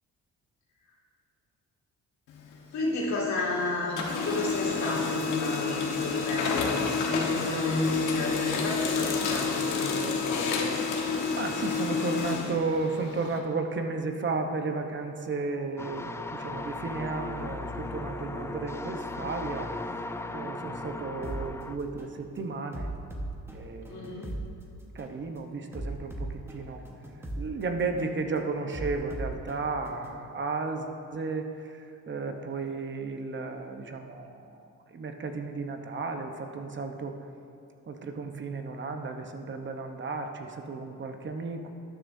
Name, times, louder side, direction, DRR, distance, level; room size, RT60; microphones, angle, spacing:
Printer, 2.3-3.5 3.8-13.4, left 5 dB, 85° left, 1.3 m, -29 dB
voice 1, 2.7-10.7 23.9-24.3, left 2 dB, 65° left, -5 dB, 2.3 m, -32 dB
voice 2, 11.4-19.7 20.3-22.9 23.5-24.1 24.9-26.8 27.4-30.9 31.1-31.4 32.1-34.3 34.9-37.1 37.9-41.7, right 3 dB, 40° right, 5 dB, 0.9 m, -33 dB
sound 1, 15.8-21.8, left 2 dB, 10° left, 0.3 m, -37 dB
sound 2, 21.2-21.4 22.0-22.2 22.7-24.5 25.0-25.2 25.7-27.5 28.0-28.2 28.7-30.2, right 1 dB, 10° right, 1.3 m, -37 dB
13.0 x 10.0 x 2.7 m, 2.5 s
cardioid pair, 90°, 30 cm